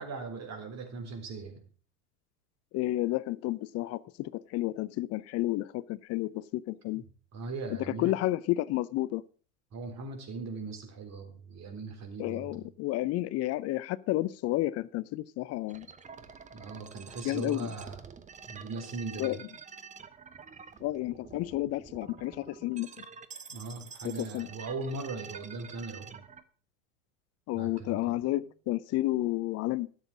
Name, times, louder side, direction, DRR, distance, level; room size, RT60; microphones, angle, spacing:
voice 1, 0.0-1.6 6.9-7.0 7.3-8.2 9.7-12.6 16.5-18.0 18.5-19.4 23.5-26.3 27.5-28.4 29.1-29.3, right 3 dB, 35° right, 3.9 m, -39 dB
voice 2, 2.7-7.0 8.0-9.2 12.2-15.9 17.2-17.7 19.2-19.4 20.8-22.9 24.0-24.5 27.5-29.9, left 16 dB, 35° left, 0.5 m, -31 dB
sound 1, 15.7-26.4, right 6 dB, 15° right, 0.8 m, -48 dB
12.5 x 7.3 x 6.2 m
hypercardioid pair, 95°, 45 cm